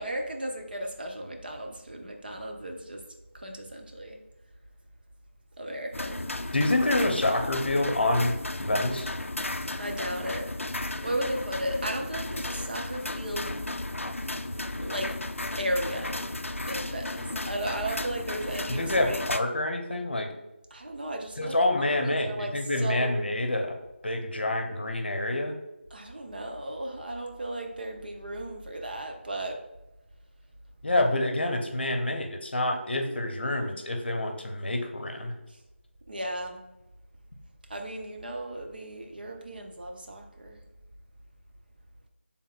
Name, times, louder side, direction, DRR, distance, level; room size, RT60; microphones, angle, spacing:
voice 1, 0.0-3.0 3.3-4.2 5.6-6.2 9.8-10.5 11.0-13.6 14.8-15.2 15.6-16.3 16.7-19.2 20.7-23.2 25.9-29.7 36.1-36.6 37.7-40.6, right 1 dB, 45° right, 3 dB, 0.6 m, -35 dB
sound 1, 5.9-19.4, left 2 dB, 90° left, 0.3 m, -34 dB
voice 2, 6.5-9.1 18.7-20.3 21.4-23.8 24.0-25.6 30.8-35.3, left 1 dB, 55° left, 4 dB, 0.7 m, -27 dB
6.4 x 3.5 x 2.4 m, 0.97 s
figure-of-eight pair, 165°, 7 cm